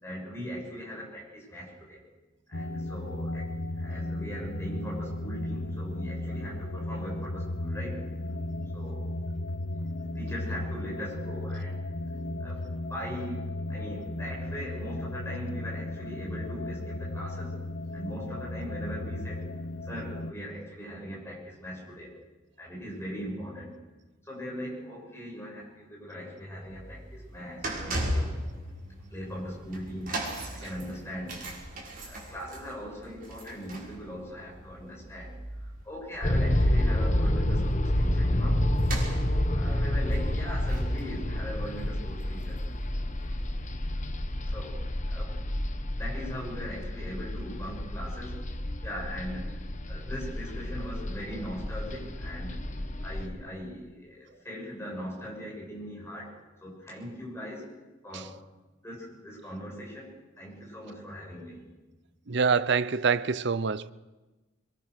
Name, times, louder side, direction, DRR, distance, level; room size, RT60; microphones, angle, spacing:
voice 1, 0.0-2.0 2.5-3.5 3.8-8.0 8.7-9.1 9.7-9.9 10.1-11.8 12.4-12.6 12.9-17.6 17.9-19.5 19.8-22.1 22.6-23.8 24.2-28.3 29.1-31.4 32.1-38.6 39.5-42.6 44.4-45.4 46.0-48.4 48.8-49.5 49.9-52.6 53.0-56.3 56.6-57.7 58.0-58.4 58.8-61.6, equal, 15° left, 7.2 m, -40 dB
sound 1, 2.5-20.3, left 1 dB, 85° left, 1.3 m, -35 dB
sound 2, 26.5-42.9 43.2-43.4 44.2-44.3, right 1 dB, 45° right, 6.1 m, -39 dB
sound 3, 36.2-53.3, left 1 dB, 40° left, 1.4 m, -29 dB
voice 2, 62.3-63.9, right 5 dB, 60° right, 0.7 m, -25 dB
24.5 x 22.5 x 6.5 m
head